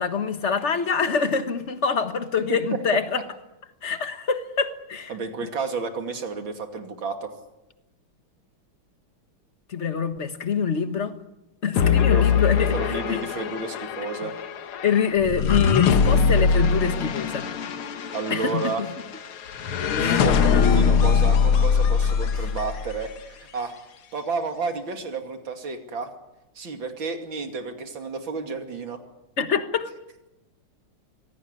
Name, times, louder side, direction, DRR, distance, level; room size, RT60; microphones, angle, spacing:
voice 1, 0.0-3.2 3.8-5.1 9.7-11.1 11.6-13.2 14.2-14.3 14.8-17.5 18.3-18.9 20.0-20.9 22.4-22.5 29.4-29.9, left 6 dB, 35° left, 1.5 m, -25 dB
voice 2, 5.1-7.3 11.8-14.3 18.1-18.8 20.0-23.7 24.1-26.1 26.5-29.0, right 4 dB, 65° right, 3.3 m, -31 dB
sound 1, 11.8-23.1, left 6 dB, 85° left, 2.1 m, -22 dB
24.5 x 17.5 x 9.8 m
omnidirectional pair, 2.3 m